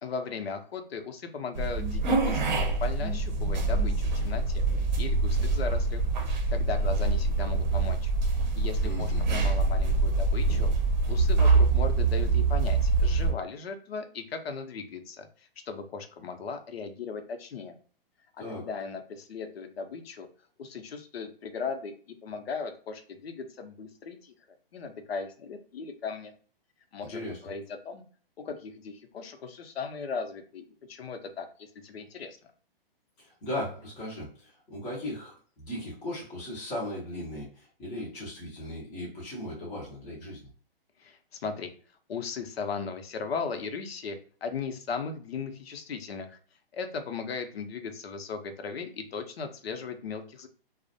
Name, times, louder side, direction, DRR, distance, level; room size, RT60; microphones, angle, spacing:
voice 1, 0.0-6.0 6.3-8.1 8.4-10.7 11.1-17.8 18.5-20.3 20.6-24.3 24.7-26.3 26.9-28.0 28.4-32.4 41.0-41.7 42.1-46.4 46.7-50.5, left 5 dB, 85° left, 6 dB, 0.6 m, -37 dB
sound 1, 1.5-13.3, right 3 dB, 50° right, 0.6 m, -25 dB
voice 2, 8.8-9.2 18.4-18.7 27.1-27.4 33.2-40.5, left 1 dB, 10° left, -7 dB, 0.4 m, -37 dB
2.4 x 2.0 x 2.6 m, 0.43 s
hypercardioid pair, 155°, 30 cm